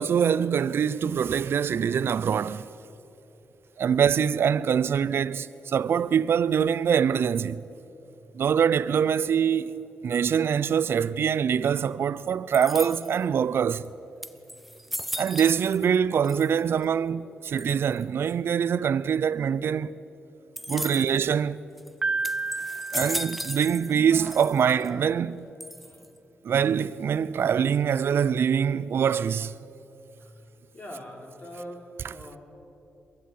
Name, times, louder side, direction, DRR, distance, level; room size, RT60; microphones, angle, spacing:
voice 1, 0.0-2.7 3.8-7.6 8.3-13.9 15.2-19.9 20.7-21.6 22.9-25.5 26.4-29.6, right 7 dB, 65° right, 0.5 m, -24 dB
sound 1, 12.5-13.3 13.8-13.9 14.2-16.0 16.2-16.8 17.6-18.0 20.6-21.2 21.8-21.9 22.2-24.0 24.3-24.9 25.6-26.2, equal, ahead, 0.9 m, -36 dB
voice 2, 20.6-21.1 22.7-22.9 25.7-26.1 30.2-30.4 30.7-32.4, equal, 35° left, 4.8 m, -44 dB
Piano, 22.0-24.1, right 3 dB, 25° right, 0.6 m, -32 dB
22.5 x 14.0 x 9.4 m
cardioid pair, 65°, 4 cm